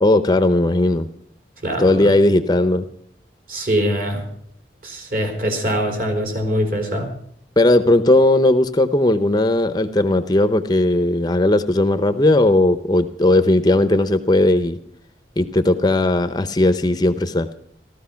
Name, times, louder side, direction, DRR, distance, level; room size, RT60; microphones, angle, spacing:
voice 1, 0.0-1.1 1.8-2.8 7.6-14.8 15.4-17.5, left 1 dB, 25° left, 10 dB, 0.7 m, -17 dB
voice 2, 1.6-2.1 3.5-4.2 4.8-7.1, equal, 50° right, 3 dB, 3.9 m, -23 dB
15.0 x 13.5 x 5.7 m, 0.64 s
head